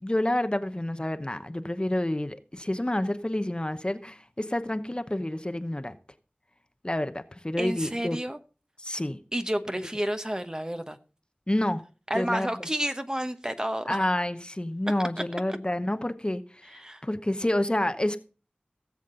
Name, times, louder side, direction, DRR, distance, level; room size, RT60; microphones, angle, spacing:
voice 1, 0.0-6.0 6.8-8.2 8.8-9.2 11.5-11.8 12.1-12.5 13.9-18.2, left 1 dB, 30° left, 0.9 m, -29 dB
voice 2, 7.6-8.4 9.3-11.0 12.1-14.0 16.7-17.0, right 1 dB, 20° right, 1.0 m, -30 dB
17.5 x 7.4 x 3.8 m
wide cardioid pair, 50°, 3 cm